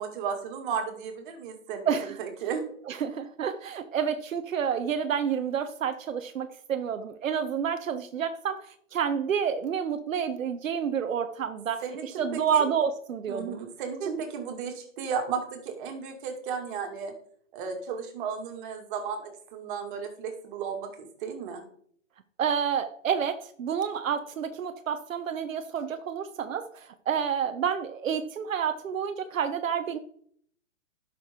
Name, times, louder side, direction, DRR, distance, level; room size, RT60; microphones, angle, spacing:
voice 1, 0.0-2.6 11.8-12.7 13.3-17.1 17.5-21.6, right 6 dB, 40° right, 3 dB, 2.3 m, -34 dB
voice 2, 1.9-2.2 2.9-13.6 14.0-14.2 22.4-30.0, right 7 dB, 85° right, 9 dB, 0.9 m, -29 dB
11.0 x 6.3 x 3.7 m, 0.63 s
hypercardioid pair, 145°, 38 cm